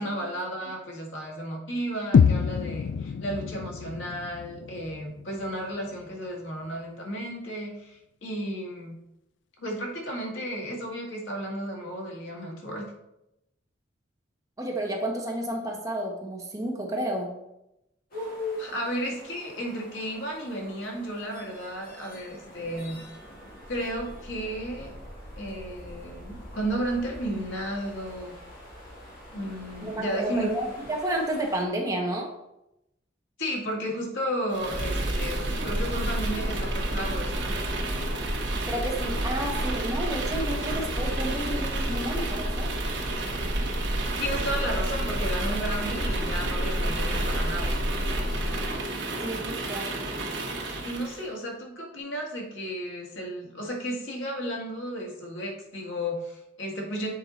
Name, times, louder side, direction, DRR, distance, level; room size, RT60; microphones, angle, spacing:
voice 1, 0.0-9.0 9.6-12.9 18.1-23.0 23.7-24.9 25.4-28.4 29.3-30.7 33.4-37.6 44.2-47.8 50.8-57.1, equal, 90° left, -1 dB, 1.9 m, -33 dB
sound 1, 2.1-6.1, left 6 dB, 70° left, 0.3 m, -26 dB
voice 2, 14.6-17.3 29.8-32.3 38.7-42.7 49.2-49.9, right 1 dB, 20° right, 0 dB, 1.2 m, -31 dB
sound 2, 18.1-31.6, equal, 50° left, 2.3 m, -46 dB
sound 3, 34.5-51.2, right 1 dB, 70° right, 1.3 m, -29 dB
7.5 x 4.5 x 4.1 m, 0.86 s
head